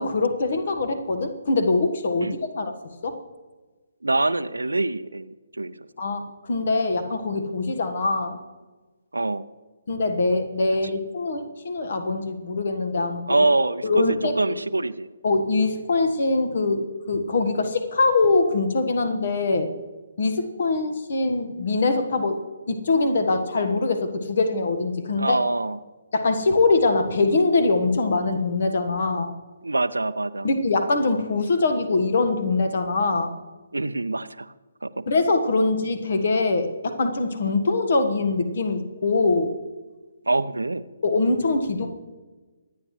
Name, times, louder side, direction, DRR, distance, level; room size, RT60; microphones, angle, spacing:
voice 1, 0.0-2.7 3.0-3.2 6.0-8.4 9.9-13.2 13.8-14.5 15.2-19.7 20.2-22.4 22.7-25.4 26.1-29.4 30.4-33.4 35.1-39.5 41.0-41.9, left 3 dB, 50° left, 7 dB, 1.4 m, -23 dB
voice 2, 4.0-5.7 9.1-9.4 13.3-15.1 25.2-25.8 29.6-30.5 33.7-34.5 34.8-34.9 40.3-40.8, right 2 dB, 75° right, 14 dB, 0.6 m, -24 dB
24.5 x 9.6 x 3.2 m, 1.3 s
figure-of-eight pair, 140°, 0 cm